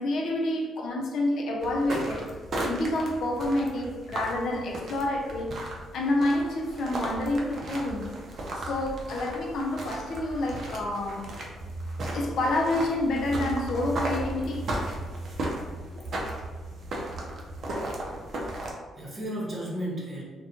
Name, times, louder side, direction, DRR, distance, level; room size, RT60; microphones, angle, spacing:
voice 1, 0.0-2.3 2.6-5.6 5.9-8.3 8.5-11.4 12.1-14.7, left 1 dB, 70° left, 0 dB, 0.4 m, -28 dB
sound 1, 1.6-18.7, right 1 dB, 55° right, 0.5 m, -35 dB
voice 2, 18.4-20.2, equal, 30° right, -4 dB, 0.9 m, -35 dB
2.4 x 2.2 x 2.8 m, 1.4 s
cardioid pair, 90°, 0 cm